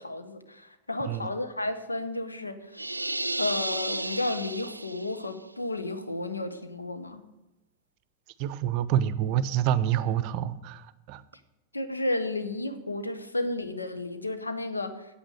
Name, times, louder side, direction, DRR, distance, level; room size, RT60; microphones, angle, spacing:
voice 1, 0.0-2.7 3.4-7.2 11.7-14.9, left 2 dB, 80° left, 10 dB, 0.9 m, -32 dB
sound 1, 2.7-5.3, right 2 dB, 85° right, 0.3 m, -33 dB
voice 2, 8.4-11.2, right 10 dB, 45° right, 16 dB, 0.6 m, -27 dB
8.9 x 8.2 x 7.8 m, 0.98 s
figure-of-eight pair, 90°, 0 cm